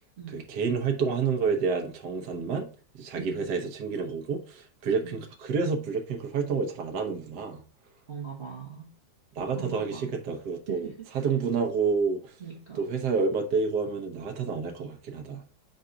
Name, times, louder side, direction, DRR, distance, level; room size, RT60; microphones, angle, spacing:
voice 1, 0.3-2.7 2.9-7.6 9.3-12.4 12.7-15.4, right 5 dB, 60° right, 1.4 m, -29 dB
voice 2, 3.2-3.5 5.0-5.2 8.1-8.9 9.5-10.2 10.7-11.1 12.4-12.9, right 7 dB, 35° right, 1.5 m, -40 dB
4.7 x 3.9 x 5.6 m
omnidirectional pair, 2.1 m